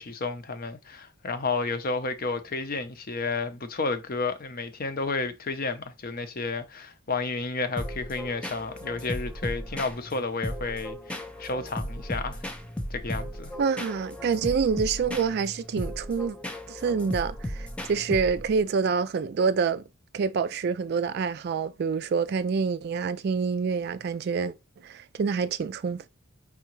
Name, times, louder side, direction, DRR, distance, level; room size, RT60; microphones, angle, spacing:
voice 1, 0.0-12.4 12.9-13.5, left 3 dB, 45° left, 0.7 m, -31 dB
sound 1, 7.8-18.6, equal, 5° left, 0.5 m, -36 dB
voice 2, 13.6-16.4 16.7-19.8 20.1-24.5 24.8-26.1, right 5 dB, 50° right, 0.3 m, -27 dB
4.9 x 3.4 x 3.0 m
head